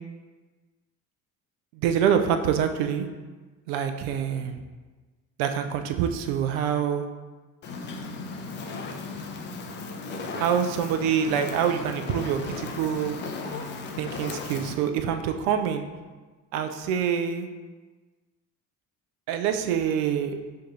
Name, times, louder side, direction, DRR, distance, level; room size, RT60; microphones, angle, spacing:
voice 1, 1.7-3.1 3.7-4.6 5.4-7.1 10.4-13.2 14.0-15.9 16.5-17.5 19.3-20.4, right 8 dB, 60° right, 7 dB, 0.5 m, -26 dB
Fire, 7.6-14.7, left 3 dB, 25° left, 0.4 m, -36 dB
6.5 x 2.5 x 2.4 m, 1.3 s
figure-of-eight pair, 50°, 50 cm